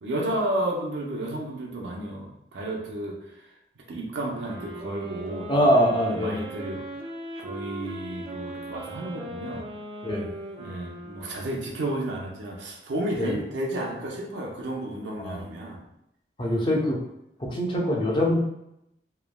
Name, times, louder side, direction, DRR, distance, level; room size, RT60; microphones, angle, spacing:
voice 1, 0.0-3.5 3.9-5.7 6.0-6.8 7.4-9.7 10.6-15.8, right 1 dB, 85° right, -1 dB, 0.5 m, -32 dB
sound 1, 4.3-12.0, right 1 dB, 30° right, 0.3 m, -39 dB
voice 2, 5.5-6.4 10.0-10.3 13.2-13.4 15.2-15.4 16.4-17.0 17.4-18.4, equal, 25° left, -1 dB, 0.5 m, -23 dB
3.1 x 2.1 x 2.2 m, 0.82 s
head